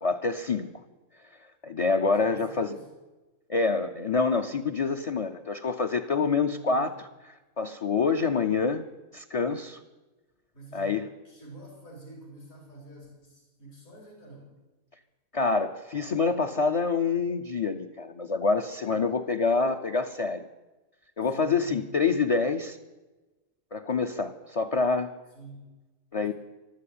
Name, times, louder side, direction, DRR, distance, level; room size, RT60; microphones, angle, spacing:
voice 1, 0.0-0.7 1.6-2.7 3.5-8.9 9.1-9.8 10.7-11.1 15.3-20.5 21.2-22.8 23.7-25.1 26.1-26.3, left 4 dB, 40° left, 4 dB, 0.5 m, -26 dB
voice 2, 2.1-2.9 6.1-7.0 10.5-14.5 21.3-21.9 25.3-25.7 26.2-26.3, right 2 dB, 75° left, -2 dB, 4.2 m, -48 dB
13.0 x 12.5 x 8.6 m, 1.2 s
omnidirectional pair, 1.4 m